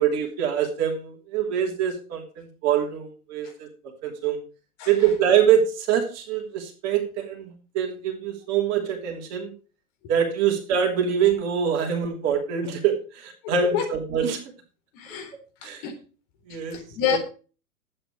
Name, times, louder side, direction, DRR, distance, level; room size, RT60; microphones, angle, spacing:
voice 1, 0.0-3.7 4.0-4.4 4.9-9.5 10.1-14.4 15.6-15.8 16.5-16.8 17.1-17.2, right 8 dB, 35° right, 1 dB, 3.2 m, -24 dB
voice 2, 4.8-5.1 13.6-13.9 14.9-15.3 15.6-15.9 16.5-17.2, left 9 dB, 40° left, 4 dB, 4.1 m, -29 dB
12.0 x 8.9 x 5.0 m, 0.36 s
figure-of-eight pair, 110°, 45 cm